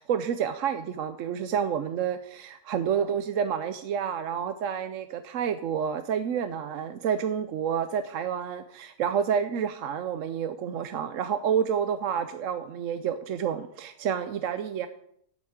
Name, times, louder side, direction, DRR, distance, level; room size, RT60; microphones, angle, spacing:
voice 1, 0.0-14.9, right 8 dB, 65° right, 10 dB, 1.0 m, -29 dB
8.5 x 7.9 x 8.7 m, 0.71 s
omnidirectional pair, 1.6 m